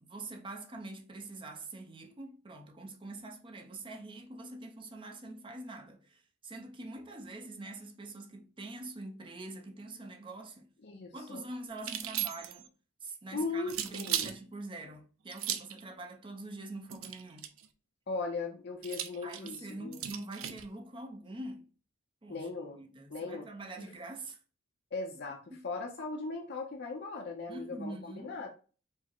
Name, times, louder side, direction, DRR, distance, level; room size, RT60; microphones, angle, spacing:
voice 1, 0.0-10.7 11.1-12.7 13.0-17.5 19.2-21.7 22.2-24.4 25.5-25.7 27.5-28.4, right 2 dB, 25° right, 0.5 m, -45 dB
voice 2, 10.8-11.4 13.3-14.3 18.1-20.0 22.3-22.8 23.1-23.5 23.8-23.9 24.9-28.5, left 3 dB, 55° left, 0.6 m, -38 dB
sound 1, 11.8-12.7 13.7-14.4 15.3-15.8 16.9-17.7 18.8-20.6, right 11 dB, 75° right, 0.5 m, -36 dB
4.5 x 2.0 x 4.4 m
head